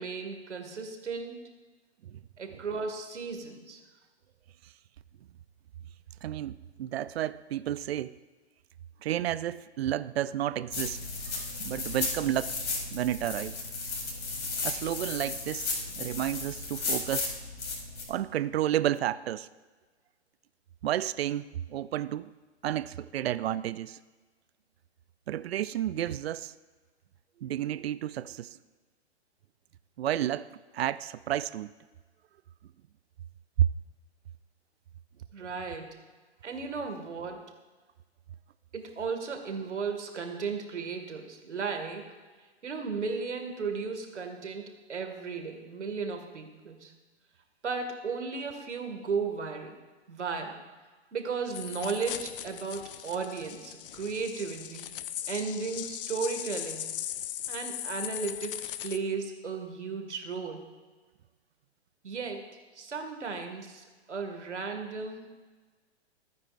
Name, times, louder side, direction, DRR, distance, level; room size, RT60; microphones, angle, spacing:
voice 1, 0.0-1.5 2.4-3.8 35.3-36.0 36.4-37.5 38.7-42.1 42.6-46.9 47.6-49.8 50.1-50.6 51.1-54.9 55.3-56.9 57.5-60.7 62.0-62.5 62.7-65.3, right 5 dB, 85° right, 5 dB, 2.1 m, -35 dB
voice 2, 6.2-8.2 9.0-11.0 11.3-12.5 12.9-13.6 14.6-17.3 18.1-19.5 20.8-22.3 22.6-24.0 25.3-26.5 27.4-28.6 30.0-31.7 33.6-33.7, right 12 dB, 60° right, 15 dB, 0.6 m, -31 dB
sound 1, 10.7-18.1, left 3 dB, 75° left, 4.0 m, -34 dB
sound 2, 51.5-59.0, left 11 dB, 55° left, 0.6 m, -39 dB
24.5 x 9.6 x 2.6 m, 1.3 s
hypercardioid pair, 130°, 34 cm